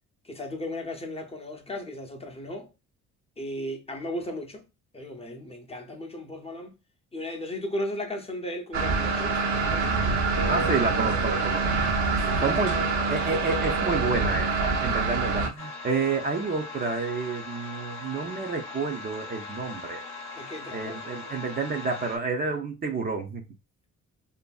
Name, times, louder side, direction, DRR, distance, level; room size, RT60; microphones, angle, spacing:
voice 1, 0.2-2.7 3.4-4.6 4.9-6.7 7.1-10.0 12.1-12.6 12.9-13.5 20.4-21.2, left 1 dB, 20° left, 0.6 m, -36 dB
sound 1, 8.7-15.5, right 4 dB, 70° right, 0.7 m, -25 dB
voice 2, 10.5-11.8 12.4-20.0 20.7-23.4, right 4 dB, 30° right, 0.4 m, -29 dB
sound 2, 15.6-22.2, left 3 dB, 60° left, 0.7 m, -40 dB
2.6 x 2.6 x 2.3 m
cardioid pair, 90°, 30 cm